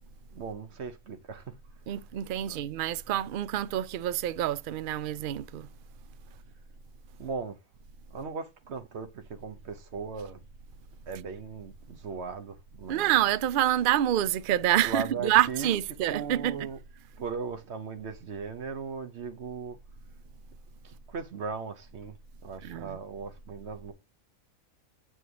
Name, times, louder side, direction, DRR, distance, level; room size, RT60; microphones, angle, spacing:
voice 1, 0.3-1.6 2.5-2.6 7.2-7.6 8.1-10.4 11.1-13.1 14.8-15.7 16.1-16.8 17.2-19.8 20.8-22.2 22.4-23.9, right 5 dB, 55° right, 1.1 m, -38 dB
voice 2, 1.9-5.7 12.9-16.6 22.6-23.0, right 12 dB, 85° right, 0.4 m, -27 dB
8.1 x 4.4 x 2.9 m
omnidirectional pair, 1.4 m